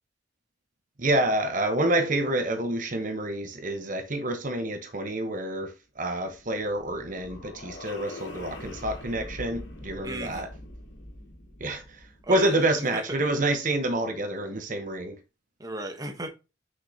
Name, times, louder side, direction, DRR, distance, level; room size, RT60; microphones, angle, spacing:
voice 1, 1.0-10.5 11.6-12.0 12.3-15.2, right 1 dB, 45° right, 0.9 m, -28 dB
sound 1, 6.4-12.6, left 1 dB, 70° left, 2.6 m, -43 dB
voice 2, 10.0-10.5 12.2-13.0 15.6-16.3, right 1 dB, 20° right, 1.0 m, -36 dB
6.7 x 5.3 x 2.7 m
head